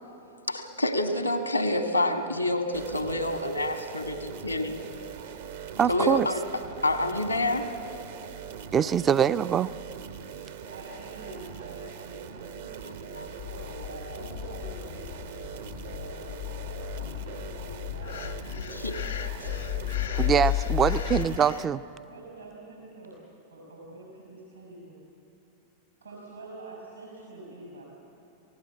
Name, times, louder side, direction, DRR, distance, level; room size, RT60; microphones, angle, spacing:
voice 1, 0.5-4.8 5.9-6.4 6.8-7.7 18.7-19.0, left 1 dB, 90° left, 6 dB, 1.7 m, -27 dB
sound 1, 2.7-21.7, right 7 dB, 60° right, 1.1 m, -42 dB
voice 2, 5.8-6.3 8.7-9.7 20.2-21.8, right 8 dB, 25° right, 15 dB, 0.4 m, -23 dB
voice 3, 10.5-19.7 20.9-21.1 22.1-23.2 23.5-25.0 26.0-27.8, right 2 dB, 80° right, -1 dB, 5.5 m, -46 dB
sound 2, 13.2-21.4, left 19 dB, 50° left, 0.4 m, -33 dB
Breathing, 18.0-21.7, left 7 dB, 65° left, 0.9 m, -41 dB
26.5 x 18.0 x 8.4 m, 2.8 s
figure-of-eight pair, 90°, 0 cm